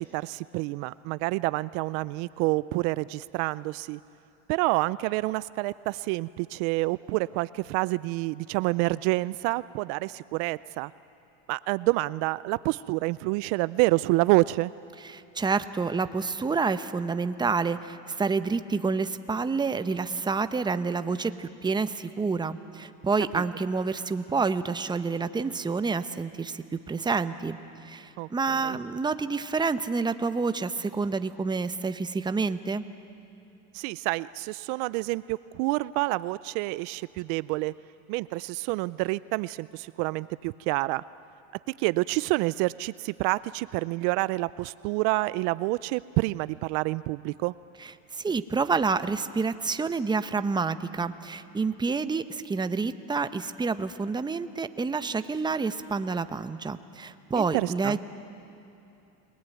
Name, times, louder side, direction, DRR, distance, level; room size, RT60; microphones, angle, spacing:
voice 1, 0.0-4.0 4.5-10.9 11.5-14.7 23.3-23.4 28.2-28.8 33.7-37.7 38.1-41.0 41.8-47.5 57.4-58.0, right 21 dB, 65° right, 18 dB, 0.5 m, -28 dB
voice 2, 15.0-27.6 27.8-32.8 47.8-58.0, right 4 dB, 10° right, 11 dB, 0.8 m, -28 dB
30.0 x 20.0 x 9.2 m, 2.8 s
supercardioid pair, 115°, 37 cm